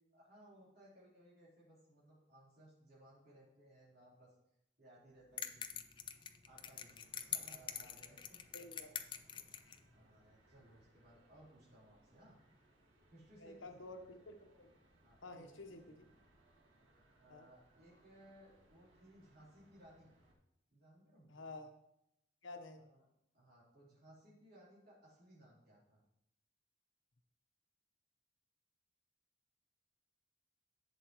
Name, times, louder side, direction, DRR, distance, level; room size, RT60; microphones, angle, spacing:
voice 1, 0.1-4.4 4.8-5.8 6.4-8.4 9.4-9.5 9.9-12.4 13.1-14.2 15.0-16.1 17.2-20.2 20.7-21.5 22.7-23.0 23.3-26.0, right 1 dB, 55° right, -8 dB, 3.9 m, -62 dB
sound 1, 5.4-9.8, left 8 dB, 25° left, 0.4 m, -44 dB
sound 2, 6.5-20.3, right 1 dB, 90° right, 2.0 m, -70 dB
voice 2, 8.5-8.9 13.4-14.7 15.2-15.8 17.3-17.5 21.3-21.7 22.4-22.8, left 2 dB, 90° left, 5 dB, 1.1 m, -51 dB
11.0 x 7.7 x 3.1 m, 0.81 s
head